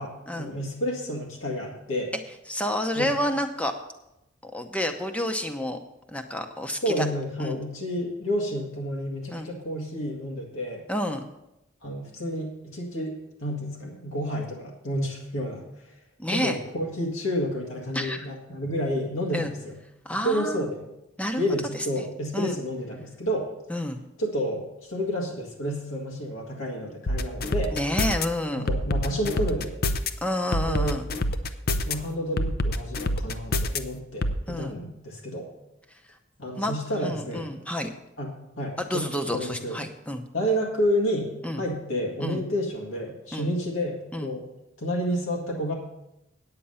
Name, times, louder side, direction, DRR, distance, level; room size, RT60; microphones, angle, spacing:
voice 1, 0.0-2.1 3.0-3.1 6.8-10.8 11.8-15.7 16.3-19.8 20.1-20.8 21.4-23.5 24.2-27.7 28.5-29.8 30.7-31.0 31.8-35.5 36.4-37.6 38.2-38.3 38.6-39.8 40.3-41.3 41.6-44.4 44.8-45.7, equal, 90° left, -1 dB, 1.9 m, -30 dB
voice 2, 2.5-3.7 4.4-5.8 6.1-7.1 7.4-7.6 9.3-9.5 10.9-11.3 16.2-16.6 17.9-18.3 19.3-19.5 20.0-20.7 21.2-21.4 21.7-22.0 22.3-22.6 23.7-24.0 27.7-28.7 30.2-31.1 34.5-34.7 36.5-36.7 37.0-37.9 38.9-40.2 41.4-41.6 42.2-42.4 43.3-43.5 44.1-44.3, left 1 dB, 5° left, 6 dB, 0.7 m, -29 dB
sound 1, 27.1-28.3 28.7-30.1 30.5-31.9 32.4-33.8 34.2-34.4, left 1 dB, 50° left, 0.5 m, -26 dB
9.1 x 8.8 x 5.6 m, 0.89 s
head